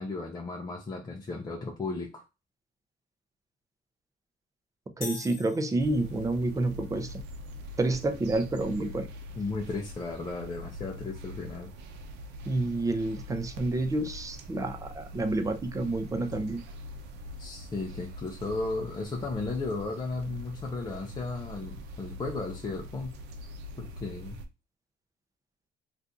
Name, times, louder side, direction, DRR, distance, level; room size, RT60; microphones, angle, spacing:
voice 1, 0.0-2.2 9.4-11.7 17.4-23.2 23.8-24.4, left 3 dB, 25° left, 0.6 m, -35 dB
sound 1, 5.0-6.4, left 5 dB, 55° left, 0.8 m, -42 dB
voice 2, 5.0-7.2 7.8-9.1 12.4-16.6, right 2 dB, 20° right, 0.6 m, -29 dB
sound 2, 5.8-24.5, left 1 dB, 85° right, 0.6 m, -43 dB
2.7 x 2.5 x 3.5 m
cardioid pair, 110°, 17 cm